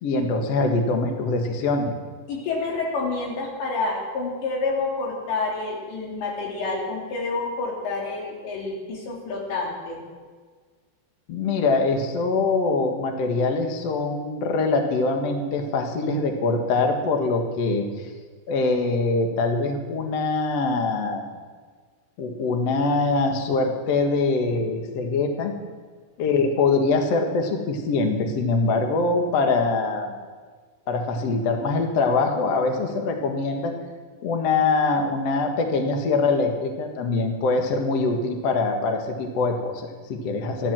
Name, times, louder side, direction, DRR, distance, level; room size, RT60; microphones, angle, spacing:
voice 1, 0.0-1.9 11.3-17.8 18.5-21.2 22.2-25.5 26.2-30.1 30.9-33.7 34.2-40.7, left 3 dB, 55° left, 4 dB, 2.0 m, -23 dB
voice 2, 2.3-10.0, left 3 dB, 90° left, -2 dB, 5.4 m, -28 dB
15.0 x 13.0 x 7.5 m, 1.5 s
omnidirectional pair, 4.9 m